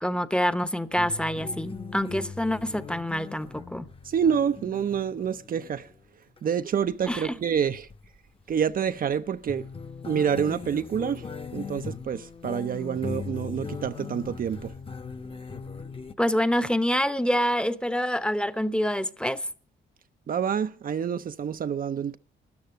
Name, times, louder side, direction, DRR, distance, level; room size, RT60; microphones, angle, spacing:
voice 1, 0.0-3.9 7.1-7.3 16.2-19.4, equal, 5° left, 0.8 m, -26 dB
sound 1, 1.0-6.0 6.4-6.5 6.9-7.1 7.6-8.2 9.5-16.1, left 5 dB, 25° left, 1.0 m, -39 dB
voice 2, 4.0-5.9 6.4-7.9 8.5-9.7 10.1-11.3 11.5-14.7 20.3-22.2, right 7 dB, 45° right, 0.6 m, -27 dB
13.5 x 9.2 x 7.8 m
cardioid pair, 90°, 20 cm